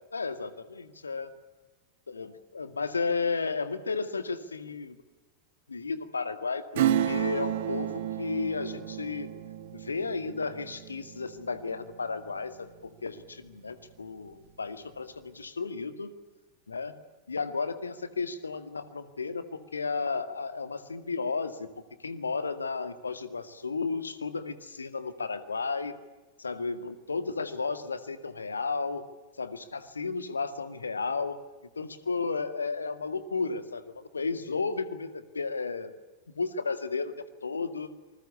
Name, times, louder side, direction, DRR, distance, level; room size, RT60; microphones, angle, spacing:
voice 1, 0.1-1.3 2.1-5.0 5.7-9.3 9.7-16.1 16.7-16.9 17.3-21.7 22.0-25.9 26.4-29.0 29.4-31.4 31.8-35.9 36.4-37.9, left 4 dB, 75° left, 11 dB, 2.0 m, -33 dB
Acoustic guitar / Strum, 6.7-13.0 13.3-13.4, right 10 dB, 55° right, 1.7 m, -32 dB
27.0 x 20.5 x 8.4 m, 1.2 s
figure-of-eight pair, 90°, 0 cm